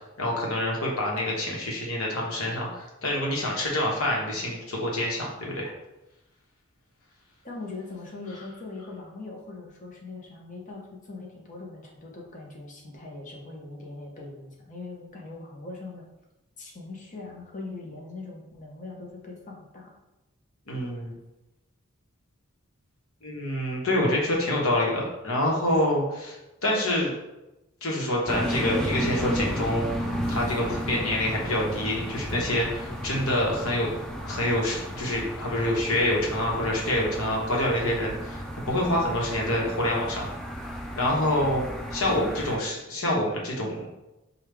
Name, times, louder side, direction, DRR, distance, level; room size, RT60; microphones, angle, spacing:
voice 1, 0.2-5.7 20.7-21.1 23.2-26.4 26.6-27.1 27.8-29.9 30.3-33.9 34.3-40.3 40.9-41.6 41.9-43.8, left 1 dB, 75° left, -2 dB, 1.1 m, -26 dB
voice 2, 7.4-16.1 16.6-19.9, left 3 dB, 35° left, -1 dB, 0.9 m, -41 dB
sound 1, 28.3-42.6, equal, 5° left, 0.4 m, -33 dB
5.2 x 2.4 x 3.3 m, 0.97 s
head